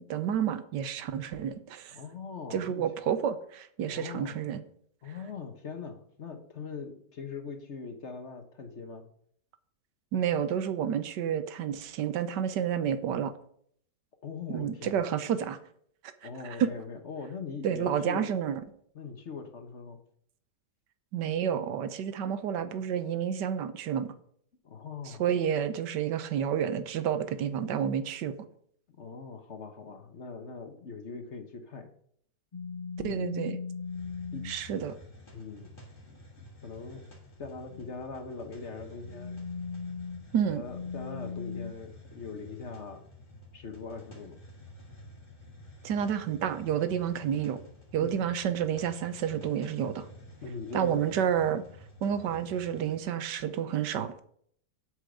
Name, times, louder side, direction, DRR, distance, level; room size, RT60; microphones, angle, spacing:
voice 1, 0.0-2.0 2.5-4.6 10.1-13.3 14.5-15.6 16.4-16.7 17.6-18.6 21.1-24.1 25.1-28.3 33.0-33.6 34.4-34.9 40.3-40.6 45.8-47.6 47.9-50.0 50.7-51.6 52.0-54.2, right 8 dB, 80° right, 11 dB, 1.4 m, -30 dB
voice 2, 1.9-2.9 3.9-4.4 5.0-9.1 14.2-15.1 16.2-18.3 18.9-20.0 24.6-25.2 29.0-31.9 33.0-33.3 34.0-34.5 34.8-34.9 35.3-35.7 36.1-36.2 36.6-37.1 37.4-39.4 40.5-43.0 43.5-44.4 48.0-48.3 50.4-51.1, left 4 dB, 45° left, 6 dB, 1.2 m, -41 dB
sound 1, 32.5-34.6 37.6-38.0 38.9-41.7, left 5 dB, 75° left, 0.3 m, -38 dB
Hiss, 33.8-53.1, left 1 dB, 30° left, 2.3 m, -51 dB
8.2 x 5.2 x 7.7 m, 0.64 s
omnidirectional pair, 1.8 m